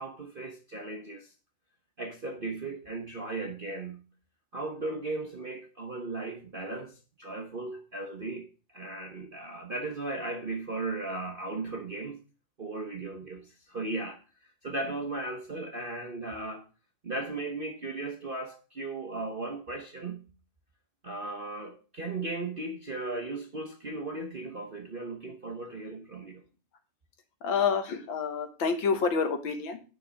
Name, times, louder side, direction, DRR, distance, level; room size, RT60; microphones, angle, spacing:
voice 1, 0.0-1.3 2.0-4.0 4.5-8.5 8.7-12.2 12.6-16.7 17.0-20.2 21.0-26.4, right 2 dB, 35° right, 0.9 m, -36 dB
voice 2, 27.4-29.8, left 5 dB, 70° left, 2.0 m, -28 dB
9.7 x 5.4 x 6.3 m
omnidirectional pair, 2.3 m